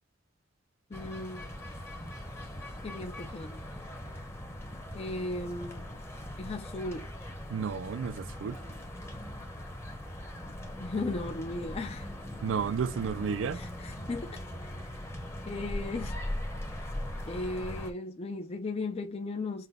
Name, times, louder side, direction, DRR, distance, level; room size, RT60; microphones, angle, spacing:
voice 1, 0.9-1.5 2.8-3.7 4.9-5.9 6.4-7.1 10.8-12.1 13.5-14.4 15.5-16.2 17.3-19.7, left 2 dB, 30° left, 0.4 m, -36 dB
sound 1, 0.9-17.9, left 1 dB, 15° left, 0.9 m, -40 dB
voice 2, 7.5-8.6 12.4-13.6, right 6 dB, 85° right, 0.4 m, -32 dB
5.8 x 2.2 x 3.4 m
head